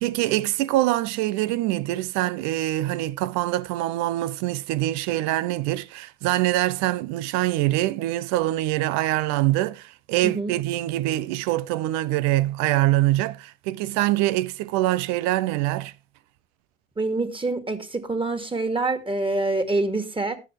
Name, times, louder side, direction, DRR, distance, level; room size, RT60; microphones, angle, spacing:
voice 1, 0.0-15.9, right 16 dB, 65° right, 0.8 m, -24 dB
voice 2, 17.0-20.4, right 2 dB, 15° right, 2.2 m, -26 dB
18.5 x 7.1 x 3.3 m
hypercardioid pair, 70°, 29 cm